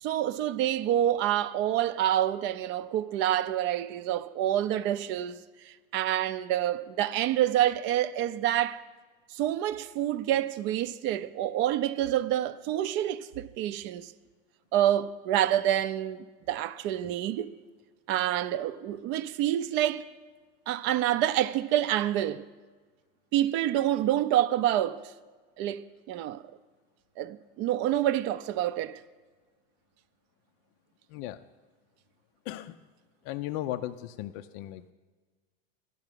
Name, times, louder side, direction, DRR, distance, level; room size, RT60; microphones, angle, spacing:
voice 1, 0.0-5.4 5.7-8.8 9.3-14.1 14.7-17.5 18.1-20.1 20.7-22.4 23.3-25.0 25.6-26.4 27.2-29.0, right 12 dB, 40° right, 0.5 m, -27 dB
voice 2, 31.1-31.5 32.4-32.8 33.2-34.9, left 14 dB, 45° left, 0.4 m, -36 dB
12.0 x 5.8 x 9.0 m
supercardioid pair, 135°, 30 cm